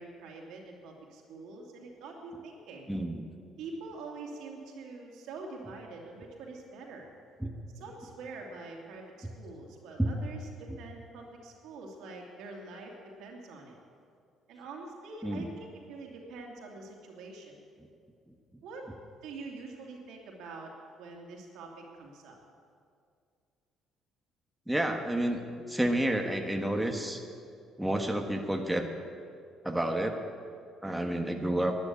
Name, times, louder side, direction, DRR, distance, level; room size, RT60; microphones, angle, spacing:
voice 1, 0.0-2.9 3.6-7.1 7.7-13.8 14.5-17.5 18.6-18.9 19.2-20.7 21.0-22.4, right 3 dB, 70° right, 0 dB, 2.7 m, -45 dB
voice 2, 2.9-3.3 7.4-7.5 10.0-10.1 15.2-15.4 24.7-25.4 25.7-27.2 27.8-28.9 29.6-30.2 30.8-31.8, right 1 dB, 5° right, 3 dB, 1.5 m, -29 dB
12.0 x 10.5 x 8.5 m, 2.3 s
hypercardioid pair, 60°, 0 cm